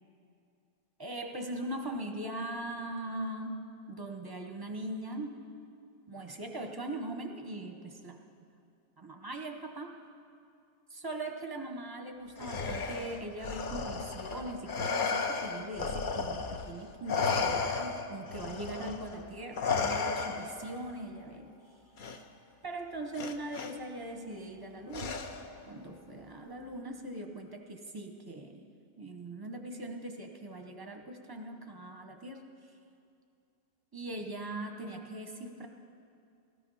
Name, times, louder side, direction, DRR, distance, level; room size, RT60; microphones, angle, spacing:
voice 1, 1.0-5.4 6.1-8.2 9.0-10.0 10.9-21.5 22.6-25.2 25.7-28.7 29.0-32.4 33.9-35.7, right 1 dB, 20° right, 3 dB, 0.7 m, -40 dB
Respiratory sounds, 12.4-16.7 17.1-20.7 22.0-22.2 23.2-23.7 24.9-25.6, left 5 dB, 55° left, 0.5 m, -34 dB
16.5 x 13.5 x 5.5 m, 2.5 s
omnidirectional pair, 1.8 m